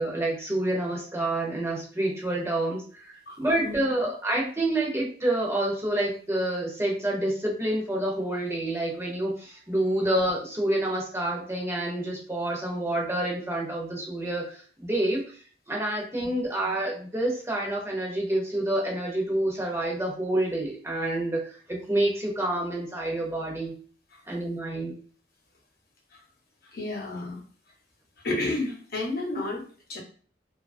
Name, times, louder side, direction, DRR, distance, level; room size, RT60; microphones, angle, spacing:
voice 1, 0.0-15.2 15.7-23.7 24.3-24.9, right 1 dB, 15° right, -2 dB, 0.7 m, -28 dB
voice 2, 3.3-3.8 16.2-16.3 24.1-24.2 26.1-26.2 26.6-27.4 28.2-30.0, left 2 dB, 60° left, 0 dB, 0.9 m, -32 dB
2.8 x 2.3 x 2.5 m, 0.43 s
head